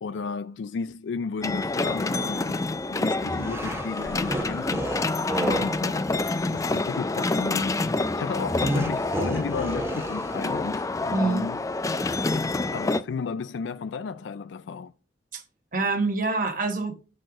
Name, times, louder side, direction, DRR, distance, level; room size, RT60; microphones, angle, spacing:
voice 1, 0.0-4.9 5.5-5.9 6.5-11.6 12.7-14.9, left 5 dB, 80° left, 0.4 m, -33 dB
sound 1, 1.4-13.0, left 3 dB, 20° left, 0.4 m, -27 dB
sound 2, 3.2-5.8 8.4-10.7, right 1 dB, 15° right, 0.9 m, -32 dB
voice 2, 5.3-5.8 11.1-11.5 15.3-15.4 15.7-17.0, right 3 dB, 50° right, 1.1 m, -26 dB
6.6 x 6.4 x 5.0 m
head